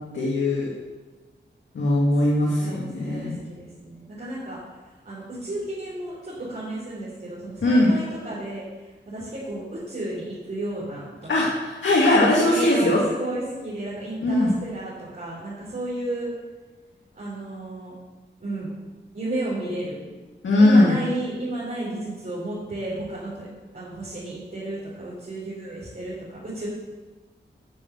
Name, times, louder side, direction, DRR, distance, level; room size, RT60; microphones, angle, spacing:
voice 1, 0.1-0.7 1.7-3.4 7.6-7.9 11.3-13.0 14.2-14.5 20.4-20.9, left 1 dB, 85° left, -4 dB, 2.0 m, -19 dB
voice 2, 2.6-4.6 5.0-8.6 9.1-11.5 12.2-16.3 17.1-17.9 18.4-18.7 19.1-20.0 20.6-23.5 23.7-26.7, right 1 dB, 55° right, -9 dB, 4.1 m, -32 dB
11.5 x 6.6 x 7.0 m, 1.3 s
wide cardioid pair, 85°, 19 cm